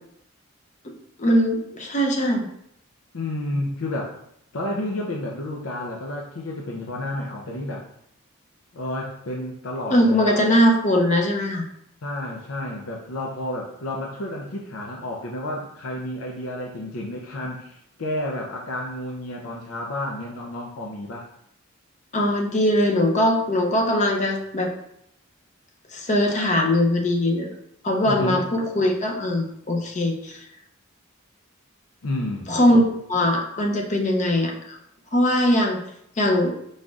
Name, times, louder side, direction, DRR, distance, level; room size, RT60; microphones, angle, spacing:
voice 1, 1.2-2.4 9.9-11.6 22.1-24.7 25.9-27.5 27.8-30.4 32.5-32.8 33.1-34.8 35.1-35.8 36.2-36.5, left 1 dB, 35° left, 2 dB, 0.6 m, -21 dB
voice 2, 3.1-4.1 4.5-7.9 8.7-10.4 12.0-21.3 28.0-28.4 32.0-32.8, left 1 dB, 85° left, -1 dB, 0.6 m, -31 dB
4.8 x 4.2 x 2.4 m, 0.73 s
head